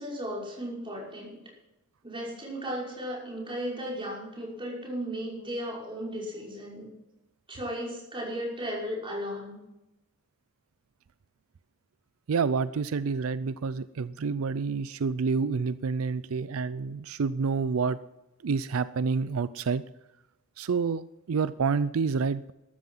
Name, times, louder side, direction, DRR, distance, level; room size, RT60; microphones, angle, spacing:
voice 1, 0.0-1.4 2.0-6.9 7.5-9.6, equal, 25° right, -4 dB, 5.7 m, -35 dB
voice 2, 12.3-18.0 18.4-19.8 20.6-22.5, right 5 dB, 90° right, 16 dB, 0.5 m, -28 dB
13.5 x 13.0 x 5.7 m, 0.94 s
head